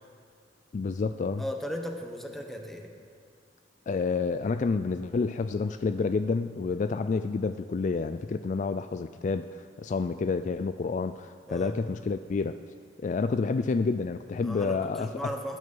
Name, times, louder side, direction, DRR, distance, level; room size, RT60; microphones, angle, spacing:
voice 1, 0.7-1.4 3.9-12.5 13.0-15.3, left 4 dB, 45° left, 10 dB, 0.3 m, -29 dB
voice 2, 1.4-2.9 11.5-11.8 14.4-15.6, equal, ahead, 3 dB, 1.3 m, -36 dB
19.5 x 9.5 x 5.4 m, 2.3 s
head